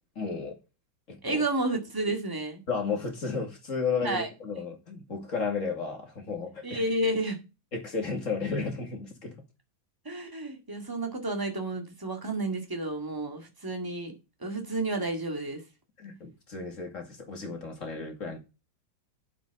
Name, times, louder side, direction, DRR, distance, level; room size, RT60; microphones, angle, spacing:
voice 1, 0.2-0.6 1.1-1.4 2.7-6.8 7.7-9.4 16.0-18.4, left 5 dB, 40° left, 2.5 m, -33 dB
voice 2, 1.2-2.6 4.0-4.3 6.6-7.4 10.0-14.1 14.4-15.6, right 2 dB, 10° right, 2.0 m, -31 dB
9.2 x 7.3 x 5.3 m
omnidirectional pair, 2.1 m